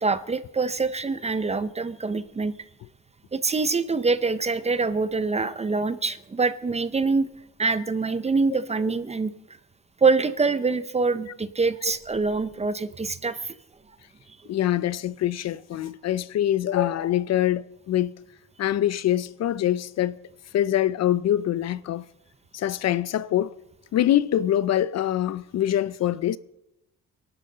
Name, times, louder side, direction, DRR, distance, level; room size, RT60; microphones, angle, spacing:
voice 1, 0.0-2.5 3.3-7.3 7.6-9.3 10.0-13.5, right 4 dB, 20° right, 0.5 m, -25 dB
voice 2, 14.5-18.1 18.6-20.2 20.5-22.0 22.5-23.5 23.9-26.4, left 12 dB, 55° left, 0.4 m, -24 dB
23.5 x 12.0 x 3.8 m
cardioid pair, 145°, 33 cm